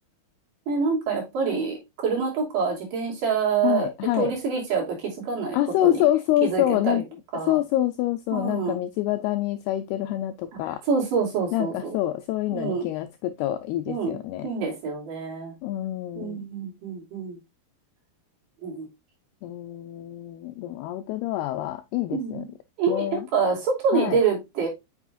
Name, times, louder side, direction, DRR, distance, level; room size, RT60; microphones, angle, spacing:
voice 1, 0.7-1.8 2.0-3.9 4.2-6.0 6.4-7.0 7.3-7.6 8.3-8.8 10.9-12.0 12.5-12.9 13.9-14.2 14.4-15.5 16.2-17.4 18.6-18.9 22.1-22.5 22.8-24.7, right 5 dB, 50° right, 4.2 m, -26 dB
voice 2, 3.6-4.3 5.5-7.0 7.4-10.8 11.5-14.5 15.6-16.4 19.4-22.5 22.9-23.3 23.9-24.2, left 14 dB, 85° left, 2.3 m, -26 dB
8.3 x 6.2 x 2.4 m
omnidirectional pair, 5.1 m